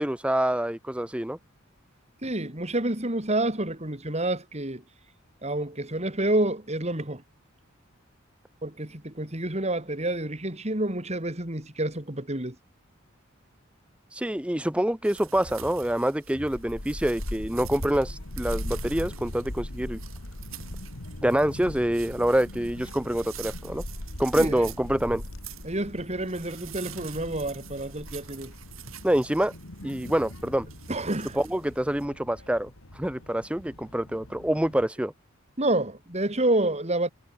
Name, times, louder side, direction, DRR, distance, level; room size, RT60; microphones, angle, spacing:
voice 1, 0.0-1.4 14.1-20.0 21.2-23.8 24.2-25.2 29.0-29.5 29.8-30.7 31.3-32.7 33.0-35.1, right 1 dB, 5° right, 0.7 m, -26 dB
voice 2, 2.2-4.8 5.4-7.2 8.6-12.6 24.4-24.6 25.6-28.5 30.9-31.4 35.6-37.1, right 1 dB, 30° right, 3.4 m, -28 dB
sound 1, 15.0-32.0, right 7 dB, 75° right, 5.4 m, -45 dB
Child speech kid speaking / Wind, 16.5-34.9, left 1 dB, 80° left, 2.7 m, -40 dB
head